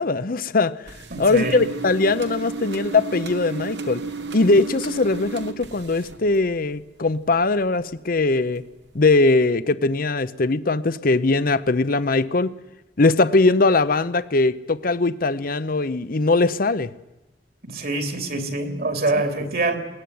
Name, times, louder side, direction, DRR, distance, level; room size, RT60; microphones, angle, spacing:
voice 1, 0.0-4.0 4.3-8.6 8.9-12.5 13.0-16.9, left 3 dB, 55° left, 15 dB, 0.8 m, -20 dB
sound 1, 0.9-6.8 7.1-7.9 8.3-8.6 9.1-9.2 9.4-9.5, right 4 dB, 80° right, 2.0 m, -33 dB
voice 2, 1.1-1.6 17.6-19.8, right 2 dB, 60° right, 7 dB, 3.2 m, -25 dB
21.0 x 18.5 x 9.6 m, 1.0 s
head